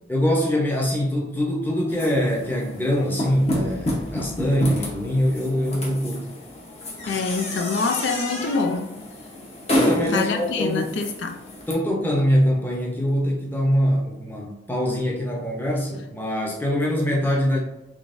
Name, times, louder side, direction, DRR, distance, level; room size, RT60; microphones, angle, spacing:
voice 1, 0.1-6.3 9.7-10.9 11.7-17.6, equal, 10° left, 0.8 m, -23 dB
sound 1, 1.9-11.7, left 1 dB, 35° left, 0.9 m, -29 dB
voice 2, 7.1-8.9 10.0-11.4, left 4 dB, 80° left, 0.4 m, -25 dB
3.8 x 3.4 x 2.6 m
head